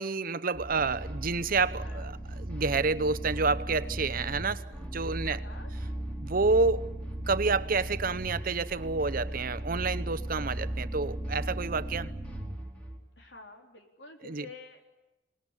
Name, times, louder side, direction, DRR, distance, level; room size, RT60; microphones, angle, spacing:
voice 1, 0.0-5.4 6.2-6.9 7.3-12.1 14.2-14.5, right 4 dB, 55° right, 0.8 m, -29 dB
sound 1, 0.5-13.0, right 1 dB, 5° left, 3.6 m, -37 dB
voice 2, 1.8-2.1 5.2-5.7 13.2-14.9, left 3 dB, 85° left, 3.9 m, -49 dB
27.0 x 19.5 x 9.9 m
head